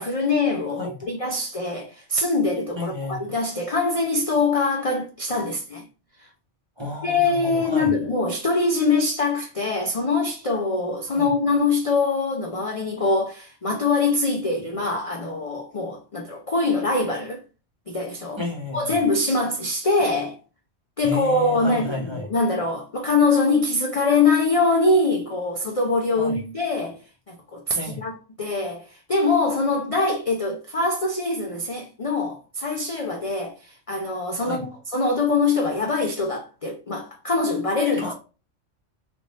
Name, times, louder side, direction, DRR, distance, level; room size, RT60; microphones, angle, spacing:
voice 1, 0.0-5.8 7.0-17.4 17.9-18.4 18.7-20.4 21.0-27.0 27.3-38.1, left 3 dB, 40° left, 0.5 m, -23 dB
voice 2, 2.7-3.3 6.8-7.9 11.1-11.3 18.3-18.9 21.0-22.3 26.2-26.4 27.7-28.0 34.4-34.6 38.0-38.1, left 2 dB, 25° right, 1.0 m, -32 dB
3.4 x 2.7 x 4.0 m
omnidirectional pair, 1.2 m